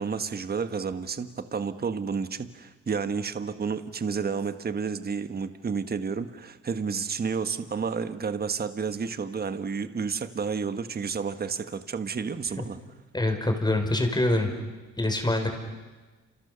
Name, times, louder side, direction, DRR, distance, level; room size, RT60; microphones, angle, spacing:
voice 1, 0.0-12.8, right 5 dB, 30° right, 11 dB, 1.3 m, -31 dB
voice 2, 13.1-14.5 15.0-15.6, left 1 dB, 15° left, 4 dB, 5.4 m, -25 dB
30.0 x 28.5 x 6.9 m, 1.2 s
cardioid pair, 90°, 30 cm